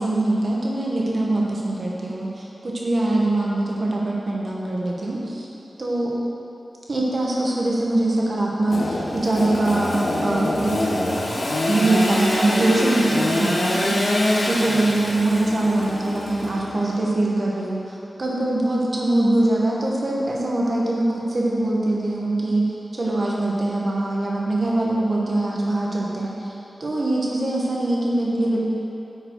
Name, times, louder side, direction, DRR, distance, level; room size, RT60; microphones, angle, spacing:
voice 1, 0.0-5.2 5.8-6.2 6.9-10.8 11.7-17.8 18.2-22.6 23.0-28.6, right 2 dB, 55° right, -4 dB, 1.5 m, -23 dB
Engine / Sawing, 8.7-16.9, left 1 dB, 75° left, 1.3 m, -24 dB
9.2 x 5.8 x 4.8 m, 3.0 s
wide cardioid pair, 95°, 0 cm